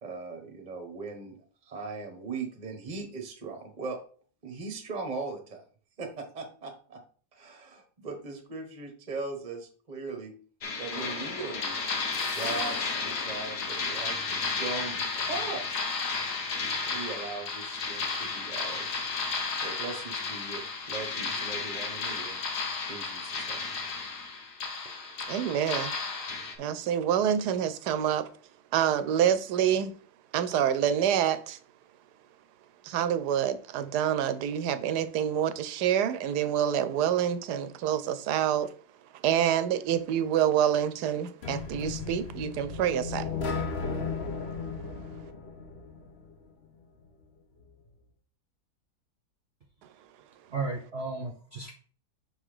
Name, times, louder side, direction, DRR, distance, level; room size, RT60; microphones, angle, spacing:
voice 1, 0.0-1.4 1.6-4.0 4.4-5.6 6.0-7.0 7.3-10.3 10.8-11.8 12.3-15.8 16.9-19.0 19.5-22.4 22.9-23.6, right 4 dB, 30° right, 1.1 m, -39 dB
sound 1, 10.6-26.6, left 4 dB, 75° left, 1.6 m, -33 dB
voice 2, 25.3-25.9 26.6-28.3 28.7-29.9 30.3-31.6 32.8-38.7 39.2-43.3, right 9 dB, 85° right, 1.2 m, -27 dB
sound 2, 41.4-46.4, left 4 dB, 45° left, 1.0 m, -35 dB
voice 3, 50.5-51.7, right 3 dB, 50° right, 0.9 m, -34 dB
5.9 x 3.9 x 4.9 m
omnidirectional pair, 1.7 m